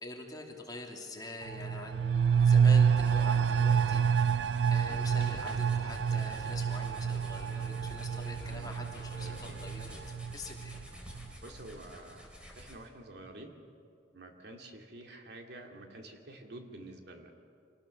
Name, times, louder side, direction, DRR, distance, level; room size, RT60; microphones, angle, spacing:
voice 1, 0.0-4.0 4.7-10.0 10.3-10.8, left 2 dB, 20° left, 0 dB, 2.6 m, -45 dB
sound 1, 1.4-10.8 11.1-11.2, right 7 dB, 80° right, 0.5 m, -28 dB
sound 2, 2.5-13.0, equal, 5° right, 3.5 m, -52 dB
sound 3, 4.9-10.0, left 1 dB, 60° left, 3.2 m, -49 dB
voice 2, 9.1-9.6 11.4-12.3 12.5-13.5 14.1-17.4, right 1 dB, 65° right, 3 dB, 2.4 m, -49 dB
26.5 x 18.5 x 6.6 m, 2.5 s
head